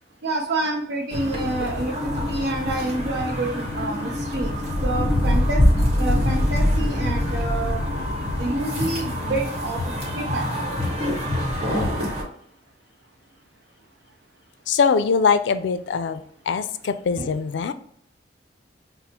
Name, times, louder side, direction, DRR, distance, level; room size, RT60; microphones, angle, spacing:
voice 1, 0.2-4.5 4.8-5.6 6.0-7.8 8.4-9.8 10.1-10.5 17.2-17.3, right 2 dB, 65° right, -1 dB, 0.5 m, -28 dB
sound 1, 1.1-12.2, left 1 dB, 35° right, 1.2 m, -24 dB
voice 2, 14.7-16.2 16.5-17.7, left 5 dB, 75° left, 11 dB, 0.3 m, -22 dB
5.9 x 2.0 x 2.8 m, 0.66 s
head